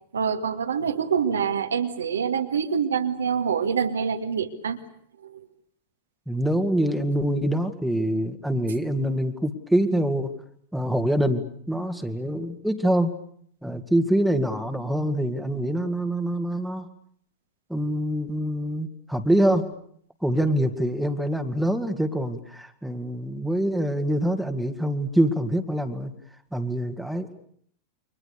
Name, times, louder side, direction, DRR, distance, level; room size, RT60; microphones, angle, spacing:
voice 1, 0.1-4.8 5.2-5.5, right 7 dB, 70° right, 6 dB, 2.2 m, -26 dB
voice 2, 6.3-10.3 10.7-13.1 13.6-16.9 17.7-19.7 20.2-26.1 26.5-27.3, right 1 dB, ahead, 6 dB, 2.3 m, -25 dB
29.5 x 25.0 x 6.9 m, 0.66 s
figure-of-eight pair, 90°, 0 cm